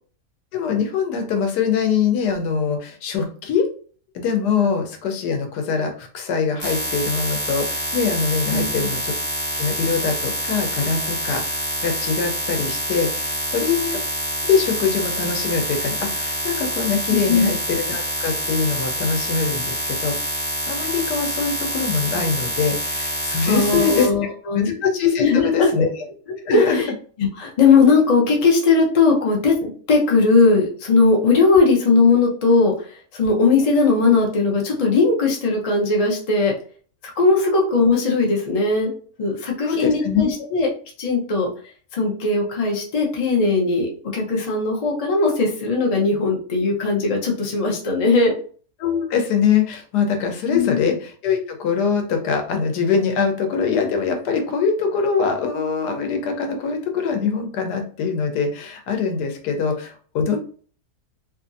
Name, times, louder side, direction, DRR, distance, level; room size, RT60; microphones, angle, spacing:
voice 1, 0.5-3.7 4.1-9.1 9.5-14.0 14.4-24.1 24.5-25.9 26.5-26.8 39.6-40.3 48.8-60.4, left 6 dB, 85° left, 4 dB, 1.2 m, -23 dB
sound 1, 6.6-24.1, equal, 10° left, 0.6 m, -26 dB
voice 2, 8.5-8.9 17.1-17.5 23.5-24.7 25.2-25.7 26.4-26.9 27.2-32.9 33.1-36.5 37.2-38.9 39.2-40.7 41.0-41.5 41.9-48.4 50.5-50.8, left 4 dB, 60° left, -1 dB, 0.4 m, -18 dB
2.8 x 2.5 x 2.5 m, 0.43 s
omnidirectional pair, 1.7 m